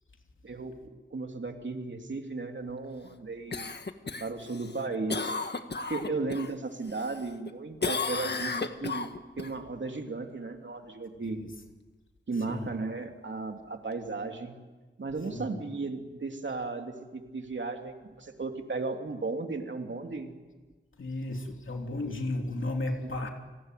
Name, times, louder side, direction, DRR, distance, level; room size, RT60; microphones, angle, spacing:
voice 1, 0.4-3.7 4.2-5.3 5.9-9.1 9.4-11.4 12.3-14.6 15.0-20.4 23.0-23.3, right 3 dB, 70° right, 4 dB, 3.0 m, -35 dB
Cough, 3.5-6.5 6.9-7.5 7.8-9.5 13.9-14.0, left 4 dB, 60° left, 1.6 m, -34 dB
voice 2, 11.2-11.5 12.4-12.7 15.3-15.6 21.0-23.3, left 2 dB, 85° left, 2 dB, 3.0 m, -34 dB
30.0 x 20.0 x 9.3 m, 1.3 s
wide cardioid pair, 80°, 20 cm